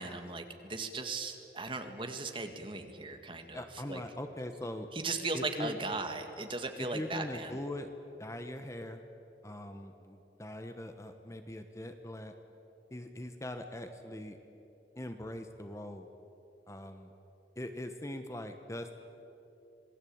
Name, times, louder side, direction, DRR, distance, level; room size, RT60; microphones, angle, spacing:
voice 1, 0.0-4.0 4.9-7.5, right 3 dB, 30° right, 6 dB, 1.9 m, -37 dB
voice 2, 3.5-4.9 5.3-5.7 6.8-7.9 8.2-9.0 9.4-12.4 12.9-14.4 15.0-16.1 16.7-17.1 17.6-19.0, left 1 dB, 15° left, 7 dB, 1.2 m, -41 dB
26.5 x 19.0 x 8.8 m, 2.8 s
head